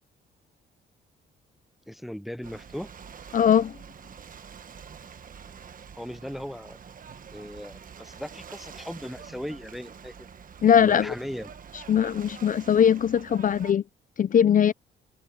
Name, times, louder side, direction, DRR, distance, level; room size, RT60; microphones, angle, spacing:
voice 1, 1.9-2.9 6.0-6.8 7.3-10.3 10.8-11.5, equal, ahead, 0.6 m, -38 dB
Ocean / Boat Water vehicle, 2.4-13.7, right 7 dB, 45° right, 1.4 m, -46 dB
voice 2, 3.3-3.8 10.6-11.1 11.9-13.8 14.2-14.7, left 8 dB, 40° left, 0.5 m, -20 dB
cardioid pair, 90°, 20 cm